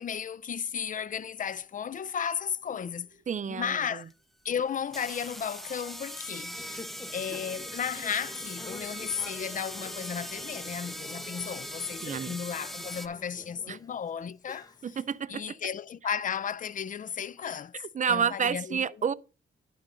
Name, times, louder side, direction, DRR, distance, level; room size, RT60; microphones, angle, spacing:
voice 1, 0.0-3.1 3.5-4.1 4.4-6.6 7.1-15.0 15.3-18.9, left 7 dB, 40° left, 0.5 m, -34 dB
sound 1, 1.1-4.8 9.2-13.7, equal, 65° right, 1.7 m, -66 dB
voice 2, 3.3-4.0 12.0-12.4 13.7-13.8 14.8-15.4 17.7-19.1, right 7 dB, 40° right, 0.5 m, -30 dB
sound 2, 4.1-4.2 4.9-13.1, equal, ahead, 0.8 m, -40 dB
Conversation / Chatter, 6.2-15.1, left 2 dB, 20° left, 1.4 m, -48 dB
11.0 x 3.8 x 6.2 m
cardioid pair, 85°, 20 cm